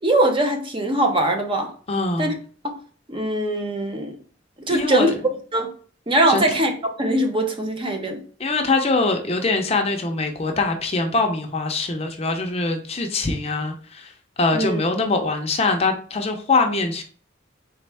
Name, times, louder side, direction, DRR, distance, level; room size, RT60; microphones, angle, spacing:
voice 1, 0.0-1.7 2.2-2.4 2.6-2.8 3.1-4.1 4.6-5.1 5.5-5.7 6.1-6.7 7.0-8.2 14.5-14.8, right 1 dB, 25° right, 3 dB, 0.7 m, -21 dB
voice 2, 1.9-2.3 4.7-5.1 6.3-6.5 8.4-14.1 14.4-17.0, left 3 dB, 35° left, 4 dB, 0.6 m, -23 dB
4.2 x 3.3 x 3.4 m, 0.42 s
head